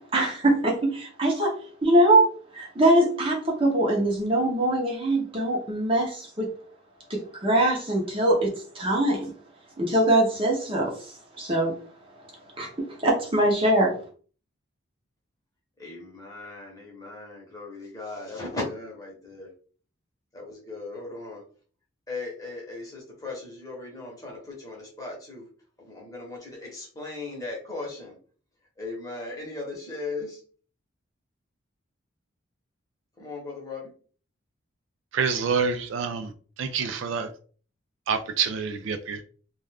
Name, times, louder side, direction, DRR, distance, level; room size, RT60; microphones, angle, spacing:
voice 1, 0.0-1.5 1.8-6.5 7.1-9.3 9.8-11.0 11.4-11.7 12.6-12.7 13.0-13.9, right 1 dB, 25° right, 0.7 m, -22 dB
voice 2, 15.8-19.5 20.3-21.4 22.1-25.4 25.8-28.2 28.8-30.4 33.2-33.9, left 3 dB, 15° left, 0.9 m, -37 dB
voice 3, 35.1-36.3 36.6-37.3 38.1-39.2, right 5 dB, 65° right, 0.3 m, -27 dB
2.4 x 2.2 x 3.3 m
head